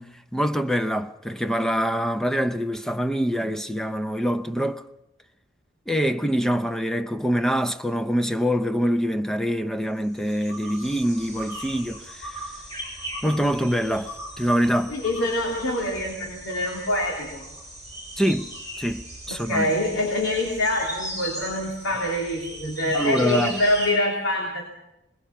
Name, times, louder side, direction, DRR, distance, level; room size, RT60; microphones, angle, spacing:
voice 1, 0.0-4.8 5.9-12.4 13.2-14.1 14.4-14.9 18.2-19.7 22.9-23.6, equal, 5° left, 0.7 m, -25 dB
sound 1, 10.1-23.9, equal, 20° left, 7.1 m, -38 dB
voice 2, 14.9-17.5 19.3-24.6, left 1 dB, 85° left, 3.2 m, -25 dB
22.0 x 20.5 x 5.9 m
head